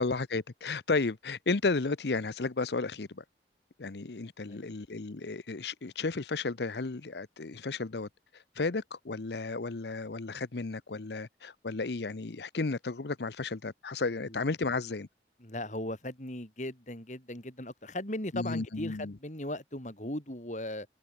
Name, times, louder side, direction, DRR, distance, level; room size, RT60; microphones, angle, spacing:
voice 1, 0.0-3.2 3.8-8.1 8.6-15.1 18.3-19.1, left 3 dB, 75° left, 0.8 m, -33 dB
voice 2, 15.4-20.9, left 1 dB, 45° left, 4.2 m, -38 dB
head